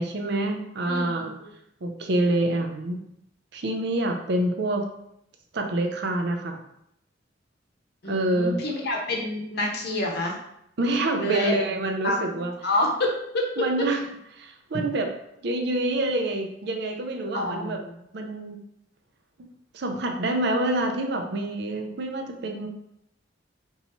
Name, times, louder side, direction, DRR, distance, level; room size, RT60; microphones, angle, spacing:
voice 1, 0.0-1.4 1.8-3.0 3.5-4.9 5.5-6.6 8.0-8.6 10.8-12.5 13.6-14.0 14.3-15.1 15.4-17.8 18.1-18.6 19.7-22.7, right 1 dB, 60° right, 4 dB, 0.5 m, -27 dB
voice 2, 0.9-1.5 8.0-10.3 11.2-11.6 12.0-12.2 12.6-13.9 14.7-14.8 17.3-17.9, left 1 dB, 60° left, 0 dB, 0.8 m, -28 dB
4.5 x 2.7 x 3.0 m, 0.76 s
head